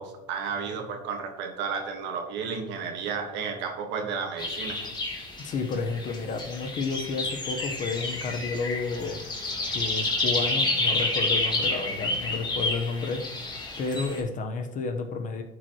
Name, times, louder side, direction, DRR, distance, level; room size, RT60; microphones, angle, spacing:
voice 1, 0.0-4.8, right 5 dB, 70° right, 4 dB, 1.6 m, -32 dB
sound 1, 4.4-14.2, left 2 dB, 20° left, 2.0 m, -29 dB
voice 2, 5.4-9.2 9.7-13.2 13.8-15.4, left 4 dB, 45° left, 6 dB, 1.1 m, -31 dB
12.0 x 4.9 x 3.1 m, 1.0 s
supercardioid pair, 105°, 19 cm